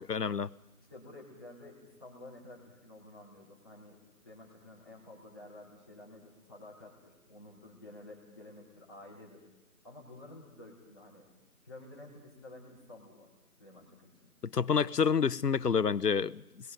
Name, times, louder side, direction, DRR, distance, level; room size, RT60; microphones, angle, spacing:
voice 1, 0.1-0.5 14.5-16.4, left 6 dB, 85° left, 0.9 m, -28 dB
voice 2, 0.8-4.0 4.2-9.4 9.8-11.3 11.6-13.3 13.6-14.3, left 2 dB, 15° left, 3.4 m, -51 dB
29.5 x 21.0 x 5.3 m
figure-of-eight pair, 170°, 46 cm